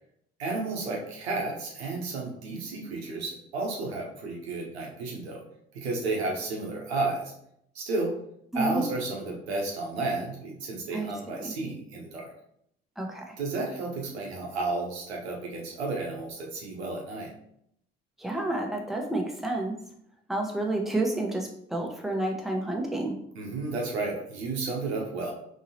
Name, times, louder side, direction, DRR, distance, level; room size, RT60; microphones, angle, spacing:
voice 1, 0.4-5.4 5.7-7.3 7.7-8.1 8.5-12.3 13.4-17.3 23.4-25.3, right 3 dB, 90° right, -1 dB, 0.8 m, -32 dB
voice 2, 8.5-8.8 10.9-11.1 11.4-11.5 13.0-13.3 18.2-19.8 20.3-23.2, right 2 dB, ahead, 0 dB, 0.8 m, -30 dB
3.8 x 3.0 x 2.7 m, 0.71 s
hypercardioid pair, 50°, 31 cm